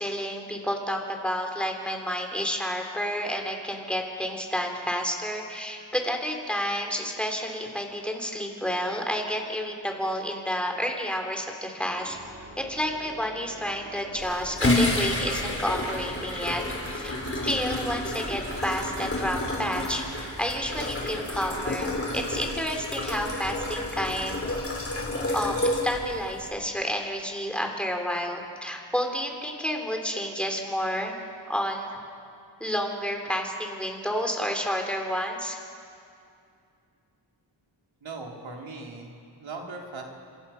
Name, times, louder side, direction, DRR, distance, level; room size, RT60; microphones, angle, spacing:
voice 1, 0.0-12.2 12.7-16.6 16.9-17.1 17.4-24.4 25.3-25.6 25.8-31.2 31.5-31.9 32.6-35.6, equal, ahead, 2 dB, 3.5 m, -30 dB
Organ, 11.8-22.6, right 1 dB, 30° right, 3.3 m, -47 dB
sound 1, 14.1-26.5, left 1 dB, 30° left, 4.5 m, -30 dB
voice 2, 38.0-40.0, right 3 dB, 90° right, 0 dB, 3.5 m, -39 dB
29.0 x 25.5 x 5.8 m, 2.4 s
wide cardioid pair, 105°, 45 cm